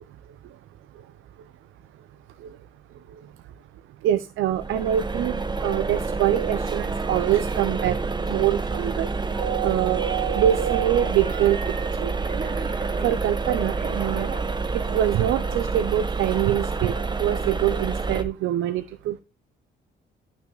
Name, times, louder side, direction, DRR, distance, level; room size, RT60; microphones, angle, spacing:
voice 1, 4.0-8.0 8.3-9.1 9.4-11.6 12.0-12.1 13.0-14.3 14.7-16.9 17.2-19.2, right 12 dB, 85° right, 14 dB, 0.6 m, -24 dB
sound 1, 4.5-18.2, right 4 dB, 20° right, 1.0 m, -28 dB
Telephone, 9.3-9.9 10.3-11.9 12.3-15.1 15.3-15.6 15.8-16.0 16.3-16.5 16.8-17.0 17.2-17.5 17.7-17.9, right 2 dB, 40° right, 5.0 m, -39 dB
11.5 x 6.1 x 3.9 m, 0.29 s
cardioid pair, 90°, 20 cm